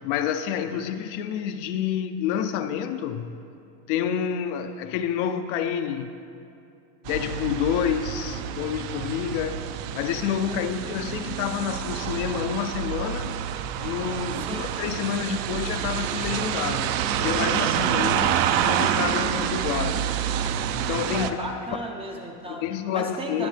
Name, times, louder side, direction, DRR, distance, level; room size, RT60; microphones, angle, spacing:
voice 1, 0.0-3.4 3.9-6.2 7.1-13.4 13.8-20.1 20.7-21.4 22.5-23.5, left 8 dB, 50° left, 0.5 m, -28 dB
sound 1, 7.1-21.3, right 9 dB, 55° right, 0.6 m, -28 dB
voice 2, 14.4-14.7 21.1-22.6 22.9-23.5, right 1 dB, 15° right, 0.5 m, -35 dB
21.5 x 7.3 x 3.3 m
supercardioid pair, 155°, 47 cm